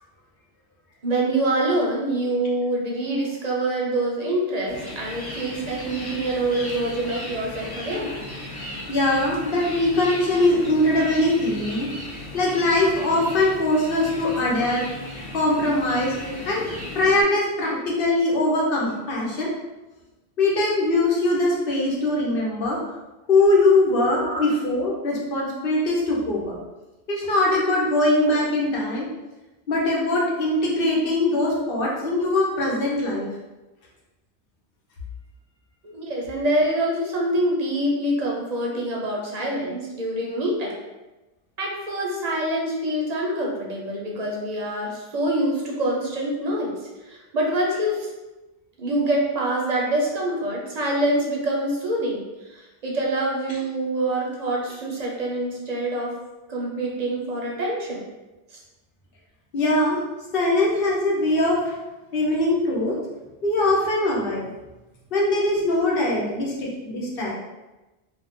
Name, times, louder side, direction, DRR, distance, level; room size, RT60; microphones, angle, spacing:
voice 1, 1.0-8.1 16.2-16.4 24.2-24.4 32.6-32.7 35.8-40.7 41.6-46.7 47.1-48.1 48.8-56.2 56.5-58.1 58.5-58.6, right 1 dB, 45° right, -2 dB, 0.7 m, -25 dB
sound 1, 4.7-17.2, left 1 dB, 35° left, 0.4 m, -36 dB
voice 2, 8.9-11.9 12.3-14.8 15.3-16.1 16.4-16.7 16.9-19.5 20.4-22.8 23.3-26.6 27.1-29.1 29.7-33.3 59.5-60.0 60.3-61.7 62.1-63.0 63.4-64.5 65.1-67.3, left 2 dB, 60° left, -3 dB, 1.0 m, -21 dB
2.4 x 2.4 x 3.6 m, 1.1 s
omnidirectional pair, 1.1 m